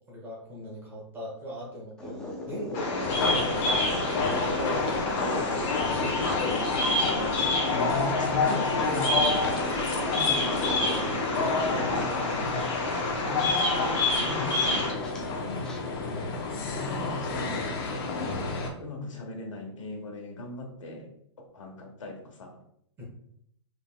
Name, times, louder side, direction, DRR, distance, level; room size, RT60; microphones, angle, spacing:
voice 1, 0.1-3.7 4.1-5.0 5.3-6.7 16.0-16.3 23.0-23.1, left 1 dB, 15° right, -3 dB, 1.3 m, -39 dB
sound 1, 2.0-15.8, left 2 dB, 5° left, 0.5 m, -38 dB
Bird vocalization bird call bird song, 2.7-14.9, left 2 dB, 30° left, 1.3 m, -29 dB
sound 2, 3.0-18.7, left 4 dB, 50° left, 0.9 m, -30 dB
voice 2, 5.2-11.1 11.4-12.7 13.2-16.4 16.7-17.7 18.0-18.3 18.8-21.1 21.4-22.6, left 1 dB, 85° left, 2 dB, 1.3 m, -39 dB
5.3 x 3.6 x 2.2 m, 0.72 s
hypercardioid pair, 155°, 16 cm